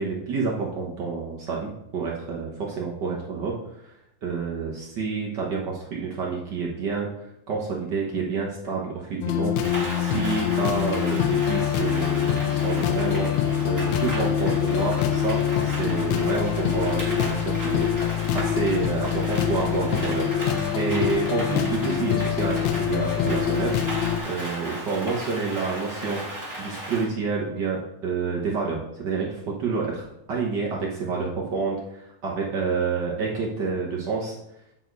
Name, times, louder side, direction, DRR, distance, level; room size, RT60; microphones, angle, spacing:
voice 1, 0.0-3.5 4.2-7.1 7.5-9.5 10.0-17.9 18.3-20.3 20.7-23.7 24.2-26.2 26.6-34.3, right 4 dB, 60° right, -3 dB, 1.1 m, -28 dB
sound 1, 9.2-24.2, left 9 dB, 80° left, 1.9 m, -25 dB
Rain, 9.6-27.1, right 1 dB, 10° right, 1.2 m, -36 dB
8.2 x 4.2 x 4.6 m, 0.80 s
omnidirectional pair, 3.3 m